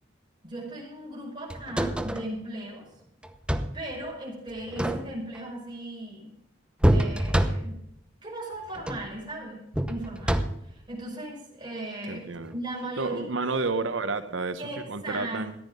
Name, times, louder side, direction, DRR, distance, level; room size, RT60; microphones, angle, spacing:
voice 1, 0.4-2.9 3.7-6.3 6.9-7.8 8.2-9.6 9.9-12.2 12.5-13.2 14.6-15.5, right 1 dB, 25° right, 5.6 m, -37 dB
sound 1, 1.5-2.3 3.2-3.8 4.6-5.4 6.8-7.9 8.7-9.1 9.7-10.8 12.4-12.6, right 1 dB, 5° right, 0.8 m, -26 dB
voice 2, 12.1-12.5 13.0-15.5, right 3 dB, 85° right, 0.9 m, -30 dB
14.5 x 10.5 x 5.3 m
head